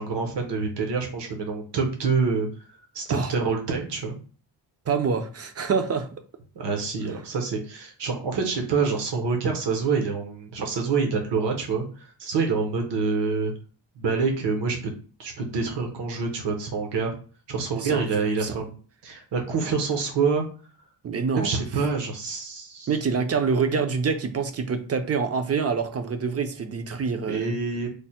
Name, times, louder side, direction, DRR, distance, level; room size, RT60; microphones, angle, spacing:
voice 1, 0.0-2.5 2.9-4.2 6.6-13.5 14.0-14.9 15.2-17.1 17.5-18.7 19.0-20.4 21.3-22.9 27.3-27.9, right 4 dB, 70° right, 0.9 m, -26 dB
voice 2, 4.9-6.1 17.7-18.6 21.0-21.6 22.9-27.6, right 5 dB, 35° right, 0.5 m, -26 dB
3.3 x 2.1 x 4.2 m
wide cardioid pair, 145°, 43 cm